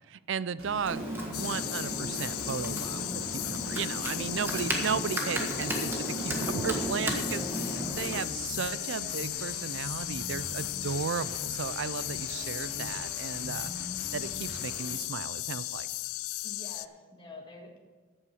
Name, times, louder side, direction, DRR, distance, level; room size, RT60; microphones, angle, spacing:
voice 1, 0.1-13.7 14.1-15.9, right 6 dB, 55° right, 17 dB, 0.4 m, -35 dB
sound 1, 0.6-14.9, equal, 75° right, 3.7 m, -43 dB
Computer keyboard, 0.9-8.2, right 1 dB, 10° right, 1.5 m, -34 dB
sound 2, 1.3-16.9, left 17 dB, 85° left, 0.4 m, -36 dB
voice 2, 4.3-4.6 5.4-5.5 16.4-17.8, left 2 dB, 20° left, -1 dB, 1.7 m, -48 dB
14.0 x 8.8 x 4.8 m, 1.4 s
head